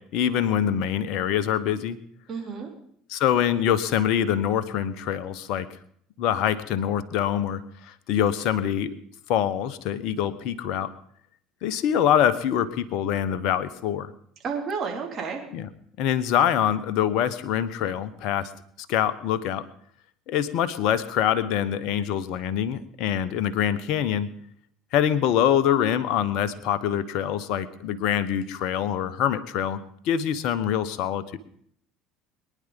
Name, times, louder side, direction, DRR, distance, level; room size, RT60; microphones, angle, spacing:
voice 1, 0.0-2.0 3.1-5.7 6.2-9.0 9.3-10.9 11.6-14.1 15.5-15.7 16.0-18.5 18.9-19.6 20.3-24.3 24.9-31.4, left 9 dB, 55° left, 13 dB, 1.0 m, -25 dB
voice 2, 2.3-2.7 14.4-15.4, right 5 dB, 35° right, 0 dB, 3.4 m, -31 dB
23.0 x 10.0 x 3.8 m, 0.65 s
figure-of-eight pair, 65°, 0 cm